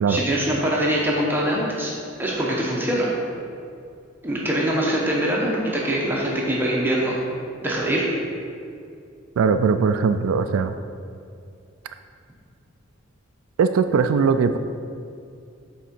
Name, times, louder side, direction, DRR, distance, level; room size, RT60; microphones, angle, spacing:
voice 1, 0.1-1.9 2.2-3.1 4.2-7.2 7.6-8.1, right 1 dB, 10° right, -4 dB, 0.9 m, -23 dB
voice 2, 9.4-10.7 13.6-14.6, right 5 dB, 85° right, 10 dB, 0.3 m, -20 dB
9.0 x 3.7 x 4.4 m, 2.4 s
head